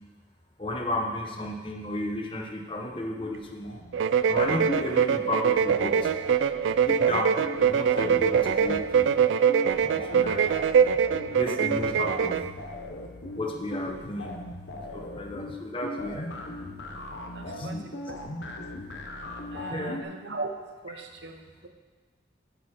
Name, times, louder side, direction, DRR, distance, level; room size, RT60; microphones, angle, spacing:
voice 1, 0.6-3.8 4.3-6.1 6.8-9.1 9.8-10.4 11.3-12.5 13.4-14.4 14.7-16.3 17.4-17.8 19.7-20.0, left 1 dB, 30° left, 2 dB, 1.0 m, -33 dB
sound 1, 3.2-5.0 5.3-20.0, left 1 dB, 80° left, 1.1 m, -39 dB
sound 2, 3.9-12.5, right 7 dB, 90° right, 0.3 m, -23 dB
voice 2, 17.3-18.2 19.5-20.5 20.8-21.7, right 3 dB, 70° right, 5 dB, 0.9 m, -39 dB
9.1 x 8.4 x 4.3 m, 1.3 s
head